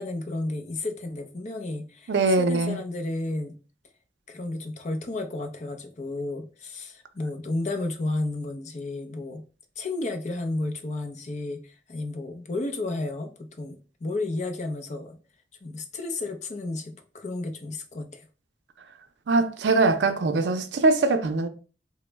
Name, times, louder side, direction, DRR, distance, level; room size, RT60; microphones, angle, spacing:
voice 1, 0.0-3.6 4.3-9.4 9.8-15.2 15.6-18.3, left 2 dB, 40° left, 0.5 m, -32 dB
voice 2, 2.1-2.8 19.3-21.5, right 3 dB, 85° right, 0.4 m, -22 dB
2.9 x 2.0 x 3.2 m
head